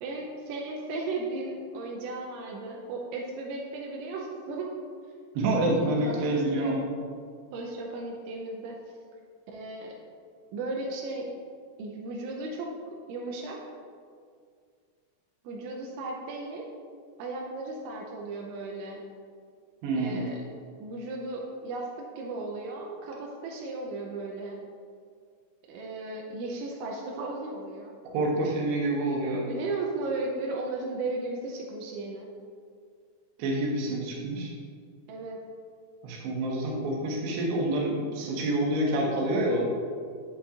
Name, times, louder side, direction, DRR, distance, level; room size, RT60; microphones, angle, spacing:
voice 1, 0.0-4.7 5.7-6.7 7.5-8.8 9.5-9.9 10.5-11.3 11.8-13.6 15.4-16.7 17.2-19.0 19.9-20.4 20.8-24.6 25.7-27.9 29.4-32.3 35.1-35.4, right 2 dB, 85° right, -1 dB, 3.1 m, -35 dB
voice 2, 5.3-6.8 19.8-20.2 28.1-29.5 33.4-34.5 36.0-39.6, right 1 dB, 70° right, -2 dB, 3.1 m, -27 dB
8.6 x 8.5 x 2.5 m, 2.1 s
omnidirectional pair, 5.3 m